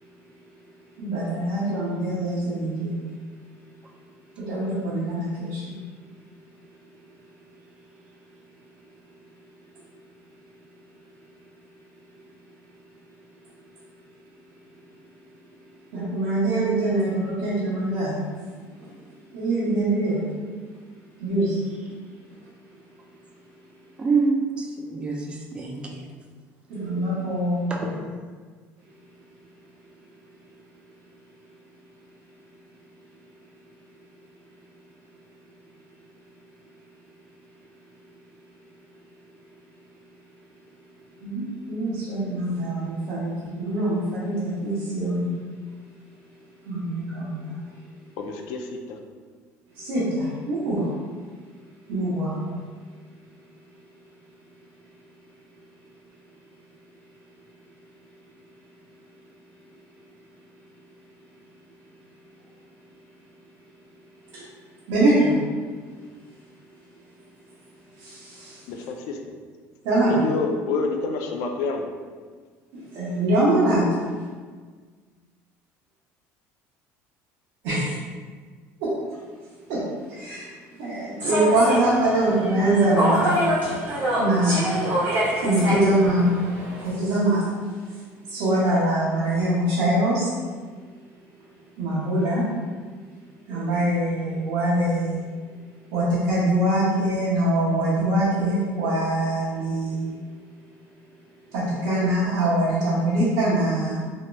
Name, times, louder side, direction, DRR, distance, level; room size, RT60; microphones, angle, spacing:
voice 1, 1.0-3.1 4.4-5.8 15.9-18.2 18.6-19.0 19.3-20.3 21.2-21.7 22.3-22.4 26.7-27.9 41.2-45.3 46.6-47.6 49.7-51.0 51.9-52.5 64.3-64.4 64.9-65.4 68.0-68.7 69.8-70.2 72.7-74.0 77.6-77.9 78.8-78.9 79.7-83.6 84.2-84.9 85.4-86.4 86.8-87.6 87.9-88.0 88.3-90.3 91.8-92.5 93.5-95.2 95.9-100.2 101.5-104.0, right 1 dB, 75° right, -11 dB, 0.9 m, -24 dB
voice 2, 24.0-26.0 27.7-28.0, right 4 dB, 15° right, 1 dB, 0.3 m, -26 dB
voice 3, 48.2-49.0 68.7-69.2 70.0-71.8, left 4 dB, 70° left, 4 dB, 0.4 m, -28 dB
Human voice / Subway metro underground, 81.2-86.9, equal, 35° right, 1.2 m, -26 dB
3.0 x 2.8 x 2.2 m, 1.5 s
cardioid pair, 165°, 6 cm